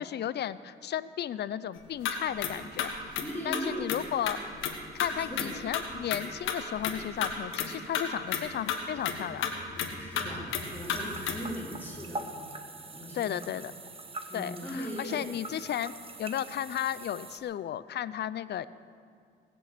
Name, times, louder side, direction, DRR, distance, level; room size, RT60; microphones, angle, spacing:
voice 1, 0.0-2.9 3.4-4.4 4.9-9.5 13.1-13.7 14.3-15.9 16.2-18.7, left 10 dB, 60° left, 16 dB, 0.5 m, -34 dB
sound 1, 1.8-2.1 2.4-2.5 2.8-4.0 4.3-4.7 5.0-7.7 7.9-8.0 8.3-8.4 8.7-11.5, left 8 dB, 85° left, 1.6 m, -32 dB
voice 2, 3.2-3.9 5.3-5.5 10.0-12.5 12.9-13.5 14.3-15.2, equal, 10° left, -5 dB, 4.3 m, -39 dB
sound 2, 10.6-17.4, right 3 dB, 30° right, 1.2 m, -43 dB
19.0 x 7.0 x 8.3 m, 2.2 s
cardioid pair, 90°, 20 cm